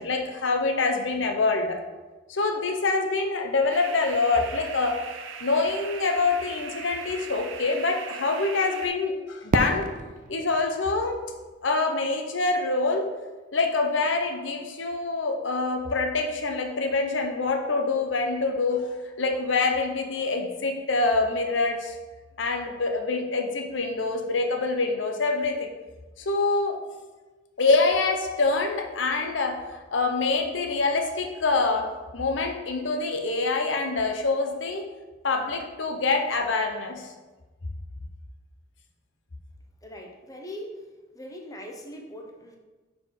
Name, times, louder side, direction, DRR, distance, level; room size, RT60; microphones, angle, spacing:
voice 1, 0.0-1.8 2.3-5.0 5.4-9.9 10.3-11.2 11.6-13.1 13.5-22.0 22.4-25.7 26.2-26.8 27.6-34.9 35.2-37.1, left 3 dB, 75° left, 3 dB, 0.8 m, -25 dB
sound 1, 3.7-8.9, right 6 dB, 90° right, 0.6 m, -40 dB
Fireworks, 9.5-12.4, right 2 dB, 45° right, 0.4 m, -32 dB
voice 2, 39.8-40.7 41.1-42.6, equal, 20° left, 1 dB, 0.8 m, -40 dB
6.2 x 4.7 x 3.9 m, 1.2 s
head